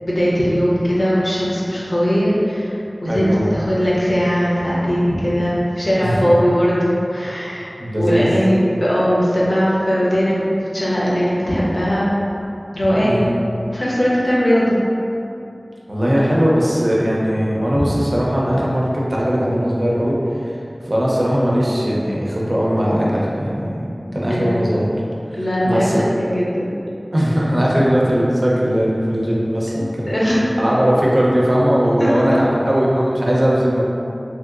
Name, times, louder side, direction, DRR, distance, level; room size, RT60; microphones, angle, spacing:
voice 1, 0.0-2.7 3.0-7.7 8.0-12.1 12.7-13.2 13.7-14.8 24.3-24.8 25.3-26.7 29.7-30.5 32.0-32.4, equal, 65° left, -7 dB, 0.7 m, -19 dB
voice 2, 3.1-3.5 6.0-6.2 7.8-8.3 13.0-13.3 15.9-20.5 20.8-23.9 24.1-24.9 25.3-26.0 27.1-30.1 30.6-33.9, equal, 50° right, -5 dB, 0.6 m, -19 dB
2.8 x 2.8 x 2.4 m, 2.7 s
wide cardioid pair, 45°, 0 cm